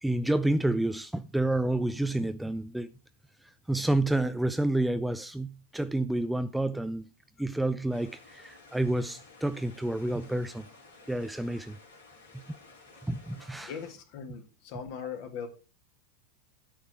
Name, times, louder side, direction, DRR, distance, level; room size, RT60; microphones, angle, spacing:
voice 1, 0.0-2.9 3.7-7.1 7.4-10.7 11.1-11.8 13.0-13.7, right 1 dB, 5° right, 0.4 m, -29 dB
sound 1, 7.9-13.9, left 3 dB, 70° left, 2.4 m, -54 dB
voice 2, 13.6-15.5, left 7 dB, 45° left, 1.9 m, -39 dB
9.7 x 4.8 x 6.0 m
figure-of-eight pair, 90°, 0 cm